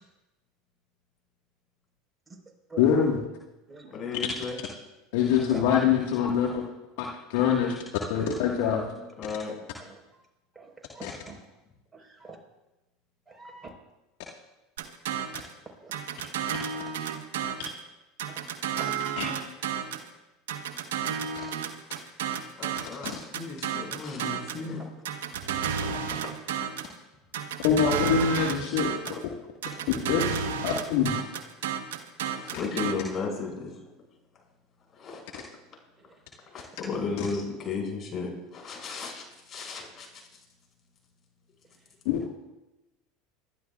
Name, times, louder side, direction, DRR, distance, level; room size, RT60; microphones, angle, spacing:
voice 1, 2.8-3.2 5.1-6.6 7.0-7.8 8.1-8.9 11.0-11.1 19.2-19.3 23.0-23.1 27.6-29.3 29.9-30.3 30.6-31.2 37.2-37.3 42.0-42.3, left 7 dB, 65° left, -1 dB, 1.6 m, -24 dB
voice 2, 3.9-4.6 9.2-9.5 22.6-24.9 32.2-33.7 34.9-35.4 36.5-40.2, left 4 dB, 40° left, 0 dB, 6.1 m, -34 dB
voice 3, 10.6-11.4 11.9-12.4 13.3-13.7 15.8-15.9 18.8-18.9 25.9-26.0, right 4 dB, 15° right, 1 dB, 4.5 m, -44 dB
sound 1, 14.8-15.5 15.9-17.8 18.2-20.1 20.5-24.6 25.0-26.9 27.3-29.2 29.6-32.9, right 8 dB, 75° right, 1.2 m, -32 dB
26.5 x 12.5 x 2.4 m, 1.0 s
hypercardioid pair, 85°, 0 cm